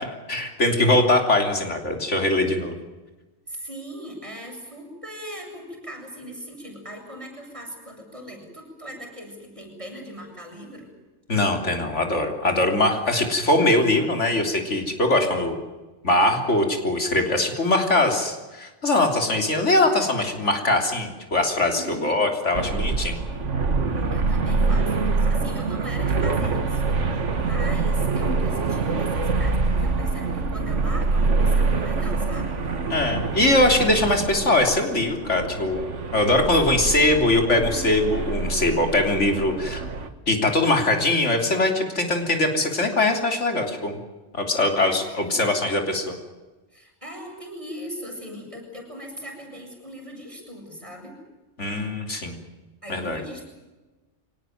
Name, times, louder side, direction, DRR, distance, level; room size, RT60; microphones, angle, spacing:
voice 1, 0.0-2.7 11.3-15.6 16.0-23.2 32.9-39.8 40.3-44.0 44.3-46.2 51.6-52.4 52.9-53.2, left 2 dB, 80° left, 4 dB, 3.7 m, -22 dB
voice 2, 3.5-10.9 21.7-22.2 24.1-32.5 36.6-36.8 39.5-39.6 44.8-45.4 46.7-51.2 52.8-53.4, equal, 25° right, 1 dB, 7.4 m, -39 dB
sound 1, 22.5-40.1, right 3 dB, 85° right, 1.9 m, -25 dB
24.5 x 19.0 x 9.2 m, 1.2 s
omnidirectional pair, 1.2 m